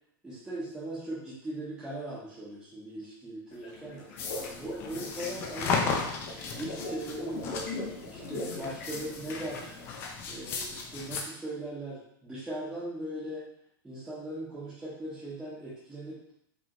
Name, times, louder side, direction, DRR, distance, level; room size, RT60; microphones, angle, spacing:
voice 1, 0.2-4.1 4.6-7.5 8.1-9.8 10.3-13.5 13.8-16.3, right 1 dB, 5° right, -12 dB, 0.9 m, -39 dB
sound 1, 3.5-10.3, left 2 dB, 45° left, 1.0 m, -41 dB
sound 2, 4.2-11.2, left 4 dB, 20° left, 0.4 m, -35 dB
5.0 x 3.2 x 3.0 m, 0.74 s
supercardioid pair, 170°, 12 cm